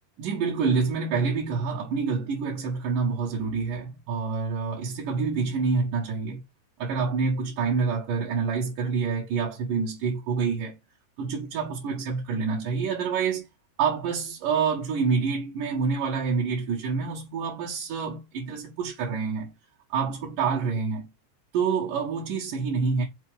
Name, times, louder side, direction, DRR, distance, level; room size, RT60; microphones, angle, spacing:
voice 1, 0.2-6.4 6.8-10.8 11.2-13.5 13.8-19.5 19.9-21.1 21.5-23.1, right 5 dB, 75° right, 2.8 m, -27 dB
5.9 x 4.4 x 3.7 m
omnidirectional pair, 3.8 m